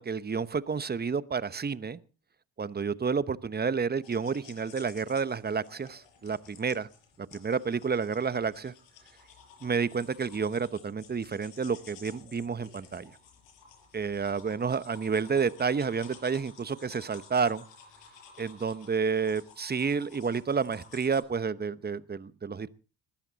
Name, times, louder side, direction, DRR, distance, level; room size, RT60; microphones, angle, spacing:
voice 1, 0.0-2.0 2.6-6.9 7.2-8.7 9.6-13.1 13.9-17.6 18.4-22.7, right 5 dB, 20° right, 16 dB, 1.0 m, -30 dB
sound 1, 4.0-21.2, left 6 dB, 70° left, 6.0 m, -54 dB
20.0 x 13.5 x 4.1 m, 0.35 s
supercardioid pair, 65°, 46 cm